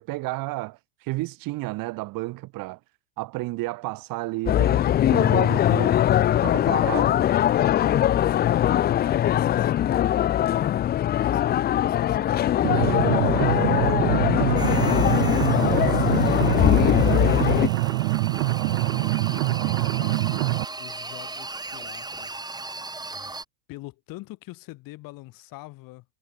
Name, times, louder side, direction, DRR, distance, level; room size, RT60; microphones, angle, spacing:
voice 1, 0.0-2.8 3.2-5.9 6.4-7.2, right 20 dB, 55° right, 6.2 m, -32 dB
sound 1, 4.5-17.7, left 11 dB, 25° left, 0.5 m, -21 dB
voice 2, 8.1-10.1 11.1-14.0 14.5-16.5 17.2-18.0 18.6-22.5 23.7-26.1, left 20 dB, 55° left, 6.9 m, -45 dB
sound 2, 12.6-20.6, right 21 dB, 70° right, 2.0 m, -24 dB
sound 3, 14.6-23.4, right 2 dB, 10° right, 3.6 m, -37 dB
hypercardioid pair, 90°, 40 cm